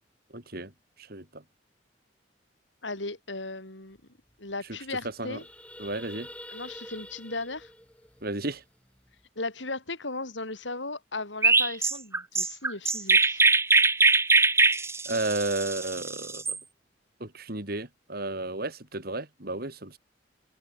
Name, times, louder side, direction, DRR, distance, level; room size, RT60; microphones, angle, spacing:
voice 1, 0.3-0.7 1.0-1.4 5.2-5.4 5.8-6.3 8.2-8.6 15.1-16.6 17.2-20.0, right 2 dB, 55° right, 4.2 m, -33 dB
voice 2, 2.8-4.0 4.4-5.4 6.5-7.7 9.4-13.4, left 3 dB, 85° left, 5.8 m, -36 dB
sound 1, 4.0-4.1 4.3-4.5 4.9-9.2, left 1 dB, 5° left, 4.5 m, -47 dB
Chirp tweet, 11.4-16.6, right 3 dB, 15° right, 1.2 m, -22 dB
head